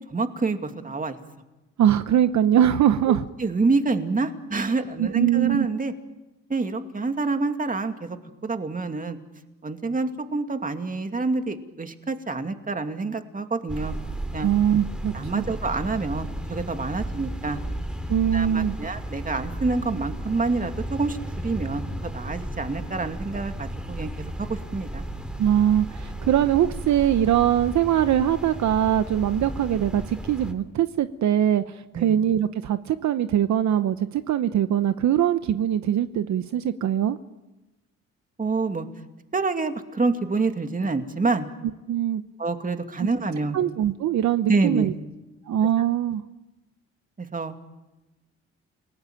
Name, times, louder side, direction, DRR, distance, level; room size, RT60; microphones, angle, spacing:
voice 1, 0.1-1.2 3.4-5.9 6.5-8.2 8.4-9.2 9.6-13.9 14.3-14.5 15.1-17.6 18.3-25.0 31.9-32.2 38.4-38.9 39.3-41.5 42.4-43.6 44.5-44.9 47.2-47.5, right 3 dB, 25° right, 6 dB, 2.6 m, -27 dB
voice 2, 1.8-3.2 5.0-5.7 14.4-15.4 18.1-18.7 25.4-37.2 41.9-42.2 43.0-43.1 43.5-44.9 45.5-46.2, right 10 dB, 65° right, 11 dB, 1.0 m, -22 dB
sound 1, 13.7-30.5, right 1 dB, 5° right, 3.2 m, -34 dB
30.0 x 19.0 x 9.0 m, 1.0 s
cardioid pair, 90°, 30 cm